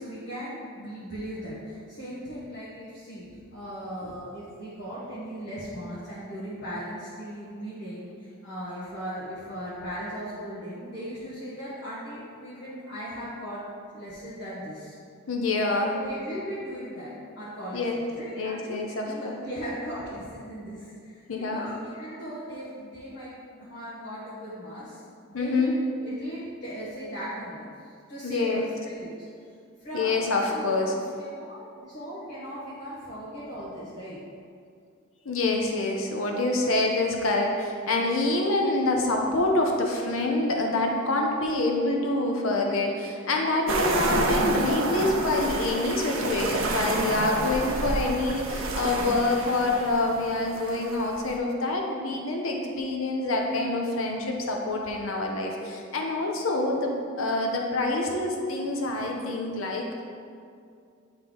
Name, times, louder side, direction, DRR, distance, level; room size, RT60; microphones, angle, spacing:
voice 1, 0.0-13.6 13.9-14.9 15.7-23.3 23.6-25.0 25.3-27.7 28.1-29.3 29.8-34.2, equal, 55° left, -10 dB, 1.2 m, -38 dB
voice 2, 15.3-15.9 17.7-18.0 18.4-19.4 21.3-21.6 25.3-25.7 28.2-28.6 29.9-30.9 35.3-56.9 57.2-60.0, left 2 dB, 70° left, 1 dB, 0.7 m, -26 dB
sound 1, 43.7-51.4, right 2 dB, 70° right, 0.7 m, -29 dB
8.9 x 3.2 x 3.8 m, 2.3 s
head